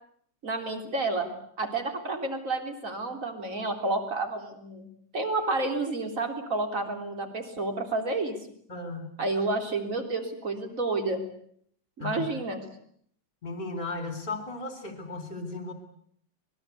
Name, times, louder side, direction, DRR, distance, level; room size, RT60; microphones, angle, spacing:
voice 1, 0.4-1.3 1.6-4.9 5.1-8.4 9.2-11.2 12.0-12.6, right 2 dB, 25° right, 6 dB, 3.5 m, -30 dB
voice 2, 8.7-9.2 12.0-12.2 13.4-15.7, left 3 dB, 15° left, 6 dB, 3.6 m, -35 dB
25.5 x 21.5 x 8.3 m, 0.66 s
omnidirectional pair, 3.7 m